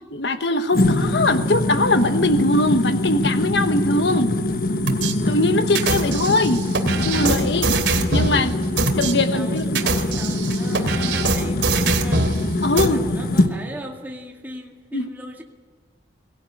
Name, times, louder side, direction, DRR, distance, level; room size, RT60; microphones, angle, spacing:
voice 1, 0.1-4.3 5.3-6.6 7.0-7.8 8.1-9.8 12.6-13.0 14.9-15.1, left 2 dB, 70° left, 9 dB, 1.1 m, -21 dB
sound 1, 0.7-13.5, left 1 dB, 55° left, 1.3 m, -23 dB
sound 2, 4.9-5.1 5.7-8.4 8.8-9.1 9.6-12.4 12.8-12.9, right 3 dB, 75° right, 2.7 m, -23 dB
voice 2, 9.1-12.6 12.9-15.4, equal, 10° right, 0 dB, 2.0 m, -38 dB
23.0 x 17.5 x 9.7 m, 1.4 s
head